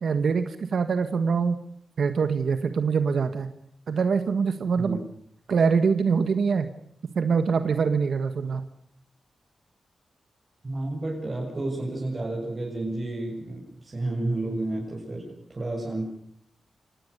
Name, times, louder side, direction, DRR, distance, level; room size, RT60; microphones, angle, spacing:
voice 1, 0.0-1.6 2.0-3.5 3.9-5.0 5.5-6.7 7.1-8.6, right 5 dB, 70° right, 9 dB, 1.5 m, -24 dB
voice 2, 10.6-16.1, right 2 dB, 35° right, -3 dB, 7.2 m, -31 dB
27.5 x 18.5 x 6.9 m, 0.68 s
cardioid pair, 85°, 0 cm